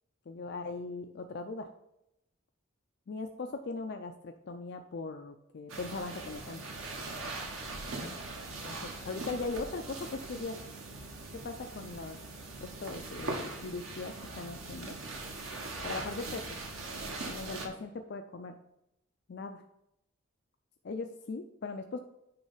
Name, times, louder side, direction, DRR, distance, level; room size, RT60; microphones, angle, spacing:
voice 1, 0.3-1.7 3.1-6.6 8.0-8.2 8.6-10.6 11.3-12.2 12.6-14.9 15.8-16.6 17.3-18.6 19.3-19.6 20.8-22.0, left 3 dB, 55° left, 5 dB, 0.4 m, -39 dB
sound 1, 5.7-17.7, right 2 dB, 90° right, 1.4 m, -41 dB
9.5 x 3.2 x 5.5 m, 0.86 s
head